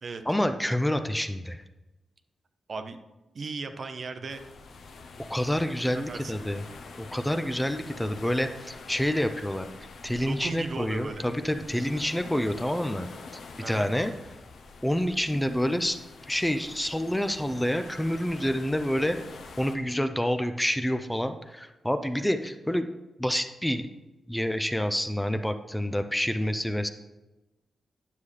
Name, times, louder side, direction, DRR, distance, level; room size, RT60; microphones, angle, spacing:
voice 1, 0.3-1.6 5.3-6.6 7.0-13.1 13.7-14.1 14.8-16.0 16.3-19.2 19.6-22.9 23.2-23.9 24.3-26.9, equal, 5° left, 8 dB, 0.4 m, -28 dB
voice 2, 2.7-3.0 3.3-4.4 5.9-6.4 10.2-11.3 13.6-13.9, right 4 dB, 50° right, 8 dB, 0.6 m, -36 dB
sound 1, 4.3-19.8, left 4 dB, 75° left, 0.7 m, -46 dB
9.6 x 7.0 x 3.3 m, 1.1 s
wide cardioid pair, 115°, 0 cm